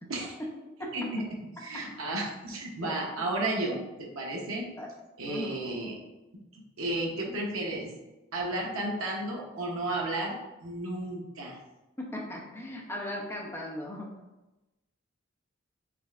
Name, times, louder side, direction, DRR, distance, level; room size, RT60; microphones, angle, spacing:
voice 1, 0.8-4.7 5.2-6.0 6.5-7.9 8.3-10.4 10.6-11.6, right 2 dB, 85° right, -1 dB, 0.8 m, -33 dB
voice 2, 5.3-5.6 12.0-14.2, left 1 dB, 10° left, -1 dB, 0.6 m, -37 dB
4.9 x 3.1 x 2.4 m, 1.0 s
head